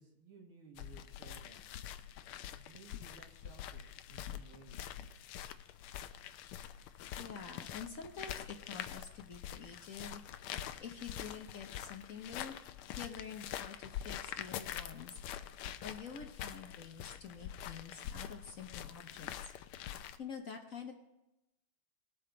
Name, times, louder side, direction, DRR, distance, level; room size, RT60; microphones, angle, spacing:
voice 1, 0.0-1.7 2.5-5.0, right 4 dB, 90° right, 0 dB, 2.6 m, -58 dB
sound 1, 0.8-20.2, left 10 dB, 90° left, 1.5 m, -45 dB
voice 2, 7.2-12.5 13.0-19.5 19.8-20.9, left 6 dB, 55° left, 3 dB, 1.0 m, -48 dB
19.5 x 6.7 x 3.9 m, 0.92 s
omnidirectional pair, 2.3 m